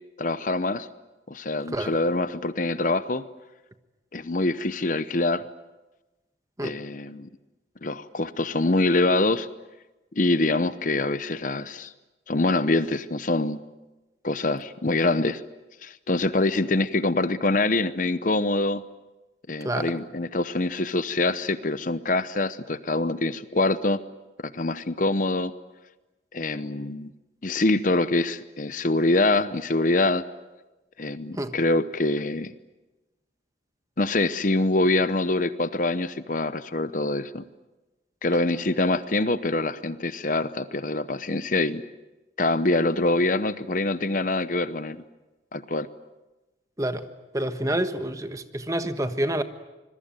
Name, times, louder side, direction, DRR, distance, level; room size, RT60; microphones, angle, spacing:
voice 1, 0.2-0.9 1.3-3.2 4.1-5.5 6.6-7.3 7.8-9.5 10.2-11.9 12.3-13.6 14.2-15.4 15.8-18.8 19.5-24.0 24.4-25.5 26.3-27.1 27.4-30.2 31.0-32.5 34.0-37.4 38.2-41.8 42.4-45.0 45.5-45.9, left 2 dB, 45° left, 14 dB, 0.8 m, -25 dB
voice 2, 19.6-19.9 31.3-31.5 46.8-47.0 47.3-49.4, right 1 dB, 20° right, 9 dB, 1.3 m, -28 dB
26.0 x 22.0 x 9.1 m, 1.1 s
head